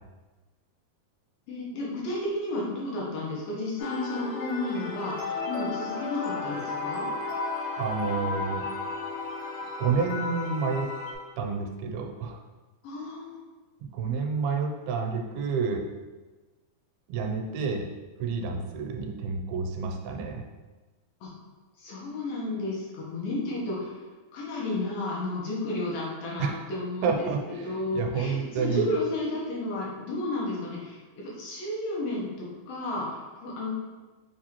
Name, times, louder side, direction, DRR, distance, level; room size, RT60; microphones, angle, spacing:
voice 1, 1.5-7.1 12.8-13.4 21.2-21.4 21.8-23.9 24.3-33.7, left 2 dB, 75° left, -5 dB, 2.6 m, -32 dB
sound 1, 3.8-11.2, left 3 dB, 90° left, 2.9 m, -34 dB
voice 2, 7.8-8.7 9.8-10.9 11.4-12.4 13.9-15.8 17.1-17.9 18.2-20.4 26.4-26.6 27.0-28.9, right 5 dB, 85° right, 3 dB, 2.4 m, -29 dB
6.7 x 2.6 x 2.9 m, 1.2 s
omnidirectional pair, 4.4 m